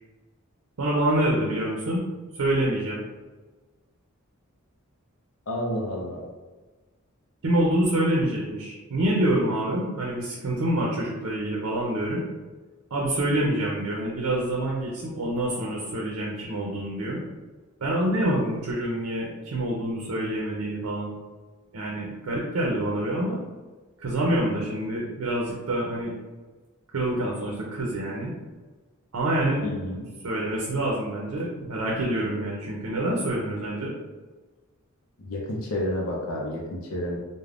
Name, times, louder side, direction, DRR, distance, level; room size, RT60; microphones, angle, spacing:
voice 1, 0.8-2.0 2.3-3.0 7.4-12.2 12.9-17.2 17.8-21.1 21.7-23.4 24.0-26.2 26.9-28.4 29.1-29.6 30.2-33.9, right 1 dB, 90° right, -3 dB, 0.5 m, -26 dB
voice 2, 5.5-6.2 29.6-30.1 35.2-37.2, left 1 dB, 70° left, -2 dB, 0.5 m, -30 dB
3.3 x 2.1 x 2.4 m, 1.3 s
head